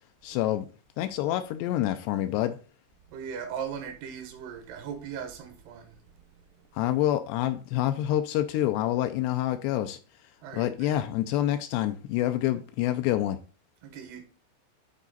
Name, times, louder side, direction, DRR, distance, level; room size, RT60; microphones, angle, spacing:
voice 1, 0.2-0.7 1.0-2.6 6.7-10.0 10.5-13.4, left 13 dB, 80° left, 2.5 m, -27 dB
voice 2, 3.1-6.0 10.4-11.0 13.8-14.2, right 7 dB, 75° right, 2.9 m, -38 dB
10.0 x 4.1 x 3.9 m
omnidirectional pair, 5.1 m